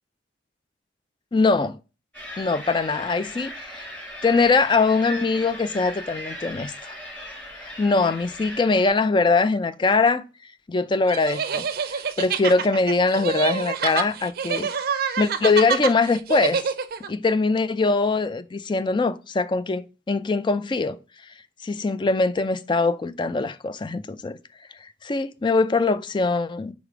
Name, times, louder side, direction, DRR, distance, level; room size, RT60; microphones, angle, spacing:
voice 1, 1.3-1.8 2.4-3.9 4.2-6.9 7.6-10.2 10.7-11.6 11.9-14.7 15.2-16.6 17.1-21.0 21.6-24.4 25.0-26.7, left 3 dB, 25° left, 0.3 m, -22 dB
sound 1, 2.1-8.9, equal, 10° left, 2.6 m, -38 dB
sound 2, 11.1-17.1, right 6 dB, 50° right, 0.5 m, -27 dB
5.0 x 4.0 x 4.9 m
head